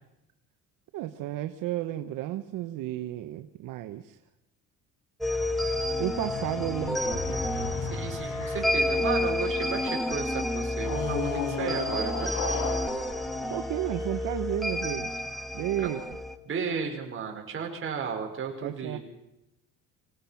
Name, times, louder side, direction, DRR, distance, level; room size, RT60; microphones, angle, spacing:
voice 1, 0.9-4.2 6.0-7.5 13.5-15.1 15.5-16.0 18.6-19.0, right 13 dB, 75° right, 8 dB, 1.1 m, -32 dB
sound 1, 5.2-16.4, left 1 dB, ahead, 1.7 m, -30 dB
sound 2, 5.3-10.0 10.8-14.4, left 3 dB, 70° left, 6.3 m, -36 dB
voice 2, 7.9-12.3 15.8-15.9 16.5-19.0, right 6 dB, 40° right, 2 dB, 5.0 m, -34 dB
25.5 x 18.0 x 5.8 m, 0.92 s
cardioid pair, 125°, 33 cm